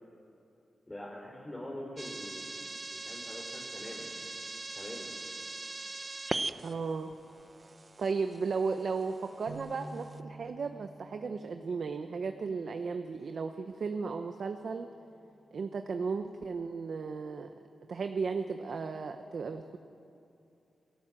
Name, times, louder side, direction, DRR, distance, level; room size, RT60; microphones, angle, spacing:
voice 1, 0.9-2.6 2.9-4.1 4.8-5.1, left 1 dB, 20° left, -4 dB, 4.2 m, -44 dB
sound 1, 2.0-10.2, right 2 dB, 30° right, 0.9 m, -41 dB
voice 2, 6.6-7.1 8.0-14.9 15.5-17.5 17.9-19.8, right 4 dB, 65° right, 6 dB, 1.0 m, -35 dB
sound 2, 9.5-15.7, right 2 dB, 85° right, 5.8 m, -52 dB
28.0 x 18.0 x 7.6 m, 2.7 s
cardioid pair, 90°, 0 cm